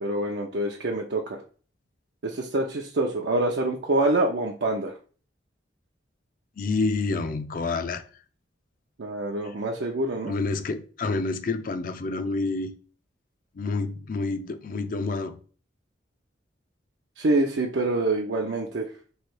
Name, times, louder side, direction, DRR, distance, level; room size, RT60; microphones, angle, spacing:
voice 1, 0.0-1.4 2.2-5.0 9.0-10.3 17.2-18.9, right 2 dB, 75° right, 0.5 m, -26 dB
voice 2, 6.6-8.0 9.5-9.6 10.3-12.8 13.5-15.4, left 3 dB, 50° left, 0.4 m, -28 dB
3.2 x 2.7 x 4.5 m
head